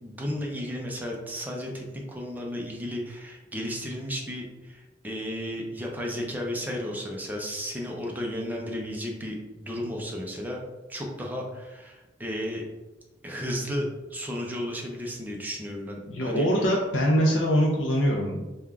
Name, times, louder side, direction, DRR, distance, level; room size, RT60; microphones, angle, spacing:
voice 1, 0.0-10.6 10.9-12.6 13.2-16.5, equal, 10° right, -1 dB, 0.5 m, -33 dB
voice 2, 16.1-18.4, equal, 90° left, -2 dB, 0.5 m, -23 dB
3.5 x 2.3 x 3.4 m, 1.1 s
head